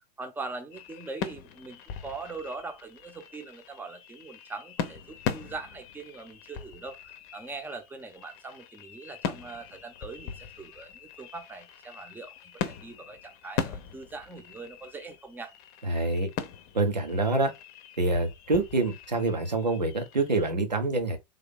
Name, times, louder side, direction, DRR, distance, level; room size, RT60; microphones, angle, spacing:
voice 1, 0.0-15.5, right 3 dB, 10° right, 0.8 m, -42 dB
sound 1, 0.7-20.5, left 8 dB, 45° left, 0.8 m, -40 dB
voice 2, 15.8-16.3 16.7-17.5 18.0-21.2, right 2 dB, 90° right, 1.1 m, -26 dB
3.6 x 2.8 x 3.6 m
figure-of-eight pair, 95°, 21 cm